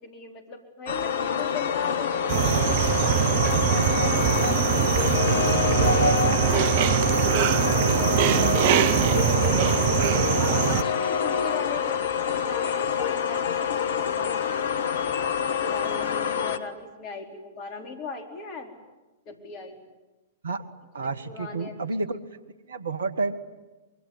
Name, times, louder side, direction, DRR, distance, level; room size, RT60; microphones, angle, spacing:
voice 1, 0.0-4.6 5.2-7.0 8.3-8.5 8.9-14.7 15.5-18.7 19.3-19.8 21.0-21.8, left 4 dB, 40° left, 5 dB, 4.4 m, -39 dB
sound 1, 0.9-16.6, left 7 dB, 60° left, 1.5 m, -26 dB
sound 2, 2.3-10.8, right 11 dB, 50° right, 1.0 m, -23 dB
voice 2, 5.7-6.6 8.1-9.2 20.4-20.6 20.9-22.2 22.7-23.3, right 4 dB, 70° right, 14 dB, 1.7 m, -31 dB
25.0 x 23.0 x 9.8 m, 1.1 s
figure-of-eight pair, 105°, 0 cm